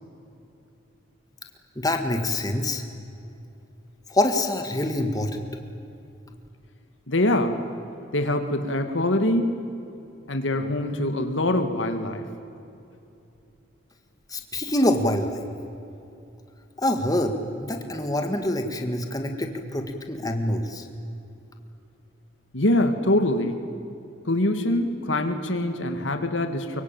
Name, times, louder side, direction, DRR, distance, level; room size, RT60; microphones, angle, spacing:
voice 1, 1.7-2.8 4.1-5.4 14.3-15.5 16.8-20.9, left 1 dB, 20° left, 5 dB, 1.8 m, -25 dB
voice 2, 7.1-7.6 8.1-9.5 10.3-12.3 22.5-23.6 24.2-26.8, left 1 dB, 80° left, 7 dB, 2.2 m, -24 dB
24.5 x 23.0 x 9.0 m, 2.7 s
head